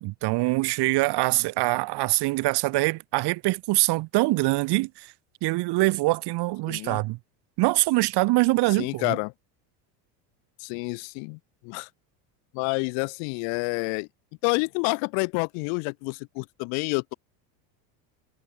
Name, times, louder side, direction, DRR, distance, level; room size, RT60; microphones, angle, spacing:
voice 1, 0.0-5.1 5.4-7.2 7.6-9.2, right 21 dB, 55° right, 1.5 m, -24 dB
voice 2, 6.7-7.0 8.8-9.3 10.6-11.9 12.5-14.1 14.4-17.1, left 40 dB or more, 60° left, 0.5 m, -28 dB
supercardioid pair, 120°, 49 cm